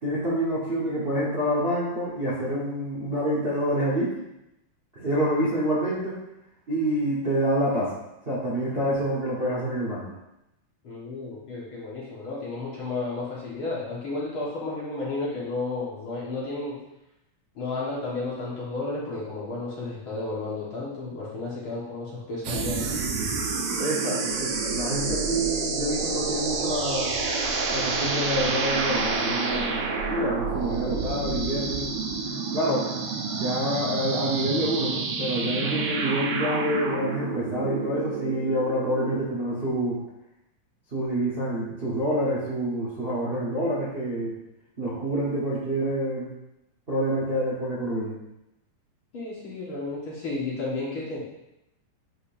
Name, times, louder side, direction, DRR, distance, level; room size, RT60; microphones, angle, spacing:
voice 1, 0.0-4.1 4.9-6.2 6.7-7.9 8.2-10.1 23.8-27.1 27.7-32.0 32.5-32.9 33.3-40.0 40.9-44.3 44.8-46.3 46.9-48.2, right 1 dB, 40° right, -7 dB, 0.8 m, -27 dB
voice 2, 10.8-16.8 17.6-22.9 49.1-51.2, left 3 dB, 50° left, -7 dB, 2.0 m, -32 dB
sound 1, 22.4-39.3, right 4 dB, 75° right, 1.5 m, -29 dB
8.4 x 5.3 x 2.7 m, 0.88 s
omnidirectional pair, 3.5 m